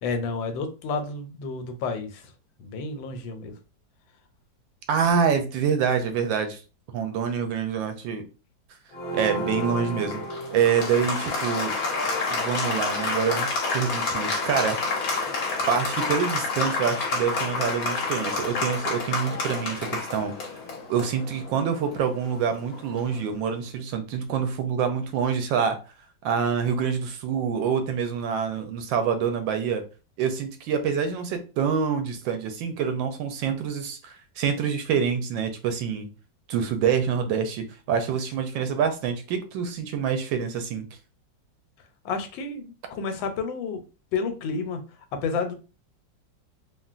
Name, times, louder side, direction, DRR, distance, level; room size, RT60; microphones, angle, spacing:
voice 1, 0.0-2.2 2.6-3.6 42.0-43.8 44.1-44.8 45.1-45.5, left 4 dB, 90° left, 1.4 m, -30 dB
voice 2, 4.9-6.6 6.9-8.2 9.1-10.2 10.5-11.7 12.3-14.8 15.7-20.5 20.9-25.8 26.2-29.8 30.2-36.1 36.5-40.9, right 7 dB, 80° right, 1.3 m, -26 dB
Applause, 8.9-23.3, left 3 dB, 60° left, 1.2 m, -29 dB
3.7 x 2.1 x 2.4 m
omnidirectional pair, 2.0 m